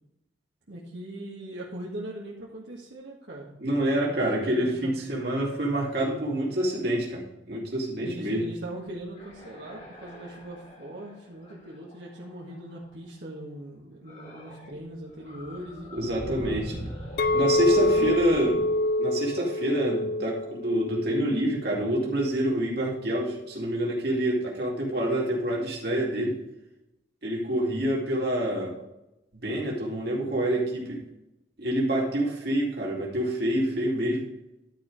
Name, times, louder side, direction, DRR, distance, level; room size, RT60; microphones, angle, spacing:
voice 1, 0.7-5.0 8.0-16.8 17.5-18.6, right 1 dB, 75° right, -4 dB, 1.7 m, -40 dB
voice 2, 3.6-8.4 15.9-16.6 17.3-18.6 19.0-26.4 27.2-28.8 29.3-31.0 31.6-34.3, right 1 dB, 55° right, -2 dB, 2.5 m, -27 dB
sound 1, 9.0-12.9 14.0-14.8 15.1-20.0, equal, 35° left, 1.9 m, -43 dB
Chink clink, 17.2-22.4, left 1 dB, 50° left, 0.4 m, -27 dB
11.5 x 4.7 x 4.9 m, 0.89 s
head